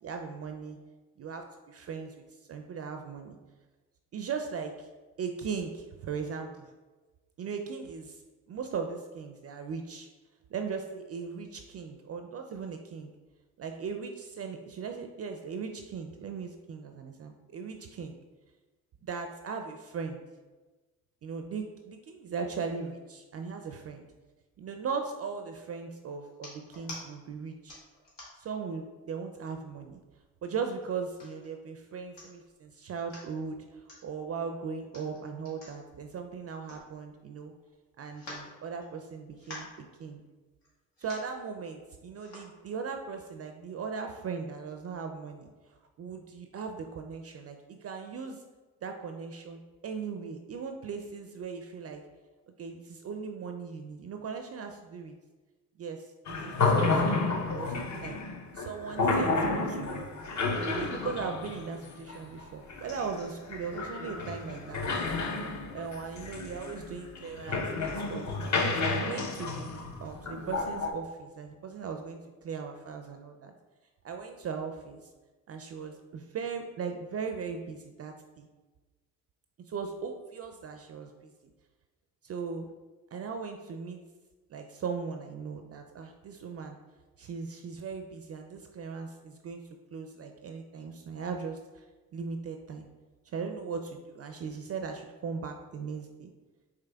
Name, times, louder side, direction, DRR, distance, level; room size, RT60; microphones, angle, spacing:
voice 1, 0.0-0.8 1.2-2.2 2.5-3.4 4.1-4.9 5.2-6.7 7.4-8.2 8.5-10.1 10.5-13.1 13.6-18.2 19.0-20.2 21.2-24.1 24.6-27.8 28.4-30.0 30.4-37.5 38.0-39.7 40.0-40.2 41.0-45.5 46.0-48.4 48.8-52.0 52.6-55.2 55.8-57.2 57.5-58.2 58.5-60.1 60.6-64.9 65.7-68.4 68.8-73.5 74.0-75.1 75.5-78.5 79.7-81.1 82.2-82.7 83.1-84.0 84.5-86.8 87.2-89.6 89.9-91.8 92.1-92.9 93.3-96.3, right 5 dB, 35° right, 5 dB, 0.4 m, -38 dB
sound 1, 26.3-27.0 27.7-28.5 29.1-29.2 29.5-30.2 30.8-31.5 31.9-32.0 32.2-32.5 32.9-33.3 33.9-34.0 34.8-37.3 37.6-37.7 38.1-39.1 39.4-39.8 40.6-40.7 40.9-41.3 42.1-42.5 43.1-43.2, left 1 dB, 75° left, 1.4 m, -47 dB
sound 2, 56.3-70.9, left 3 dB, 40° left, 0.7 m, -31 dB
5.0 x 3.2 x 2.2 m, 1.3 s
hypercardioid pair, 45°, 43 cm